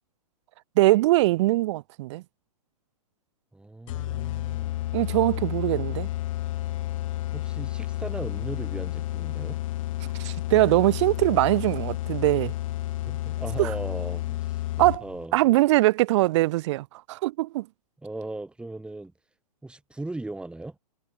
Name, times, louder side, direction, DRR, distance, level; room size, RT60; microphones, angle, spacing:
voice 1, 0.8-2.2 4.9-6.1 10.2-12.5 13.6-13.7 14.8-15.0 15.3-17.7, right 18 dB, 45° right, 0.6 m, -22 dB
voice 2, 3.5-4.8 7.3-9.6 13.0-15.6 18.0-19.1 19.6-20.8, right 2 dB, 5° right, 7.2 m, -38 dB
sound 1, 3.9-15.3, left 15 dB, 55° left, 3.6 m, -31 dB
hypercardioid pair, 130°, 20 cm